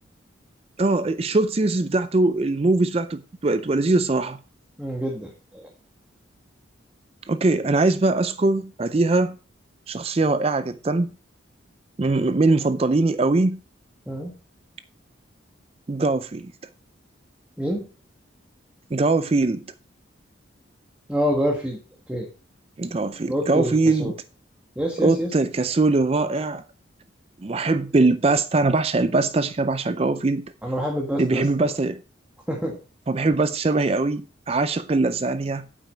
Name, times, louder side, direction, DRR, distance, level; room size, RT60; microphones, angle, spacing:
voice 1, 0.8-4.4 7.3-9.4 9.9-11.1 12.0-13.6 15.9-16.5 18.9-19.6 22.8-24.1 25.0-26.6 27.4-30.5 31.2-32.0 33.1-35.7, right 3 dB, 30° right, 0.4 m, -21 dB
voice 2, 4.8-5.7 14.1-14.3 17.6-17.8 21.1-21.8 22.1-22.3 23.2-24.1 24.7-25.3 30.6-31.7 32.5-32.8, equal, 5° right, 1.4 m, -27 dB
9.2 x 8.2 x 4.4 m
head